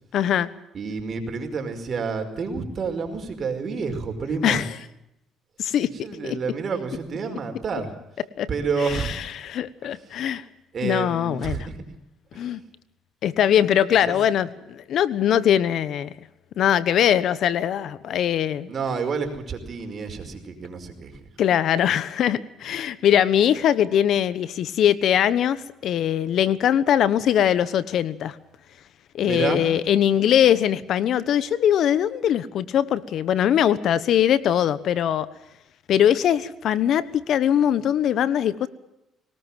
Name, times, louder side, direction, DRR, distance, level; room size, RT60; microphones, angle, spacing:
voice 1, 0.1-0.5 4.4-4.7 5.6-5.9 6.2-6.4 8.4-8.5 8.8-10.4 10.8-11.7 12.3-12.6 13.2-16.1 16.6-18.7 21.4-28.4 29.1-35.3 35.9-38.7, left 10 dB, 65° left, 16 dB, 1.2 m, -21 dB
voice 2, 0.7-4.6 6.0-7.9 8.5-9.1 10.7-11.8 12.3-12.4 14.1-14.2 18.7-21.1 29.2-29.7, right 5 dB, 45° right, 6 dB, 5.2 m, -29 dB
21.5 x 19.0 x 7.5 m, 0.86 s
cardioid pair, 85°, 0 cm